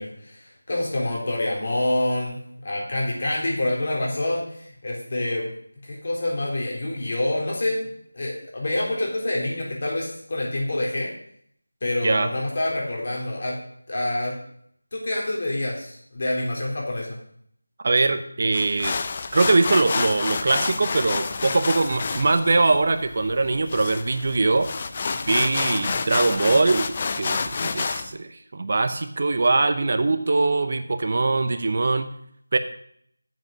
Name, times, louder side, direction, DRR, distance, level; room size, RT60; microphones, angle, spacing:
voice 1, 0.0-5.5 5.8-7.8 8.1-11.1 11.8-13.6 13.9-14.3 14.9-17.2, left 1 dB, 45° left, -3 dB, 3.8 m, -27 dB
voice 2, 17.8-18.9 19.3-24.7 25.3-32.1 32.5-32.6, right 3 dB, 45° right, 9 dB, 0.8 m, -22 dB
sound 1, 18.5-28.1, left 4 dB, 30° left, 0.5 m, -29 dB
8.0 x 7.4 x 6.1 m, 0.67 s
figure-of-eight pair, 170°, 0 cm